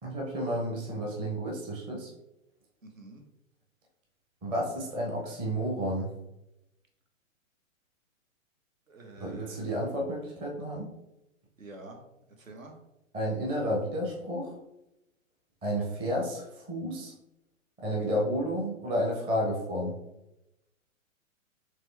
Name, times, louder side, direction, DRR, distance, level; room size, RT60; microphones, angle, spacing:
voice 1, 0.0-2.1 4.4-6.1 9.2-10.9 13.1-14.5 15.6-17.1 17.8-20.0, equal, 15° right, -2 dB, 0.6 m, -31 dB
voice 2, 2.8-3.2 8.9-9.7 11.6-12.0 12.4-12.8, right 2 dB, 75° right, 2 dB, 1.2 m, -48 dB
4.3 x 3.2 x 3.3 m, 0.90 s
figure-of-eight pair, 115°, 41 cm